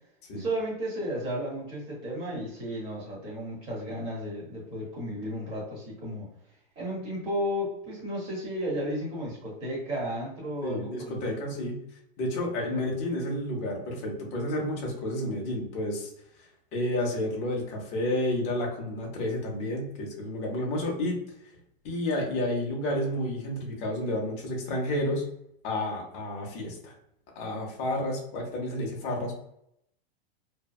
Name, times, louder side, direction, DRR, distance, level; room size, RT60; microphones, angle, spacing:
voice 1, 0.3-6.3 6.8-11.2 12.7-12.8, equal, 20° right, -4 dB, 0.9 m, -33 dB
voice 2, 10.6-11.8 12.2-16.1 16.4-21.2 21.8-25.3 25.6-26.9 27.4-29.3, left 1 dB, 25° left, -1 dB, 0.5 m, -30 dB
2.7 x 2.1 x 2.3 m, 0.75 s
supercardioid pair, 160°, 30 cm